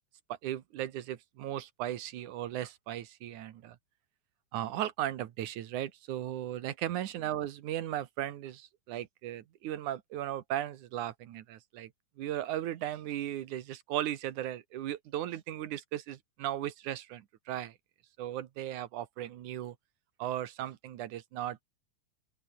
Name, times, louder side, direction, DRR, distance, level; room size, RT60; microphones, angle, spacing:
voice 1, 0.4-3.8 4.5-11.9 12.2-17.8 18.2-19.8 20.2-21.6, right 12 dB, 70° right, 2.7 m, -36 dB
open air
omnidirectional pair, 3.7 m